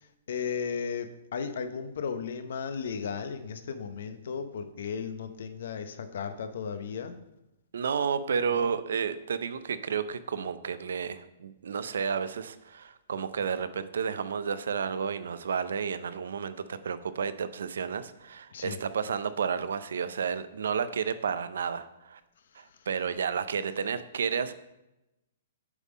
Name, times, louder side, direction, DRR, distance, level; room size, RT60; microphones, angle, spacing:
voice 1, 0.3-7.2 8.5-8.7 18.5-18.8, left 6 dB, 70° left, 9 dB, 0.7 m, -35 dB
voice 2, 7.7-22.2 22.5-24.5, right 6 dB, 80° right, 14 dB, 0.5 m, -31 dB
8.2 x 3.6 x 5.0 m, 0.94 s
hypercardioid pair, 150°, 0 cm